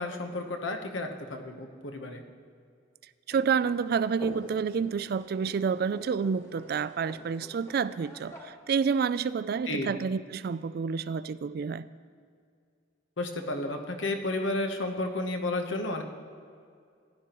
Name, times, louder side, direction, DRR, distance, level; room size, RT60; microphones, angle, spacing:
voice 1, 0.0-2.2 9.7-9.9 13.2-16.0, left 2 dB, 75° left, 5 dB, 1.0 m, -32 dB
sound 1, 3.3-8.5, left 1 dB, 15° left, 1.3 m, -48 dB
voice 2, 3.3-11.9, right 6 dB, 50° right, 15 dB, 0.3 m, -29 dB
16.5 x 11.0 x 3.0 m, 2.2 s
head